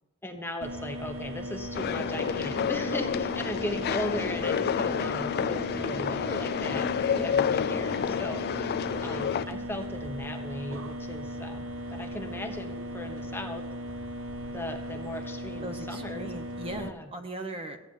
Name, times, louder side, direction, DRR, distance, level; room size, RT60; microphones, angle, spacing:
voice 1, 0.2-6.9 7.2-11.6 11.9-13.6 14.5-16.3 16.6-17.1, left 1 dB, 10° left, 4 dB, 1.0 m, -37 dB
sound 1, 0.6-16.9, equal, 75° right, 1.0 m, -38 dB
sound 2, 1.7-9.5, left 7 dB, 50° left, 0.3 m, -29 dB
sound 3, 2.2-4.7 5.0-6.0 6.4-8.7 9.1-10.0 10.5-11.4 11.9-14.2 14.6-15.6 16.1-16.2, right 1 dB, 55° right, 3.3 m, -57 dB
voice 2, 15.6-17.8, right 1 dB, 30° right, 5 dB, 1.1 m, -39 dB
15.5 x 9.1 x 5.4 m, 1.2 s
head